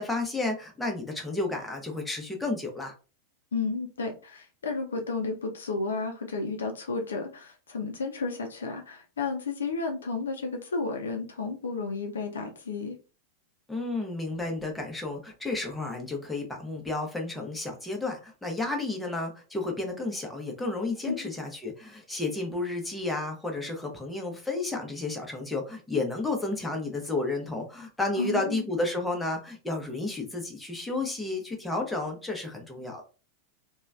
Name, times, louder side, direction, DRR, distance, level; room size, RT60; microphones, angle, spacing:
voice 1, 0.0-2.9 13.7-33.0, left 2 dB, 5° left, 1 dB, 0.7 m, -32 dB
voice 2, 3.5-13.0 21.1-21.3 28.2-28.6, left 4 dB, 65° left, 4 dB, 0.5 m, -32 dB
3.0 x 2.3 x 2.4 m, 0.33 s
figure-of-eight pair, 90°, 0 cm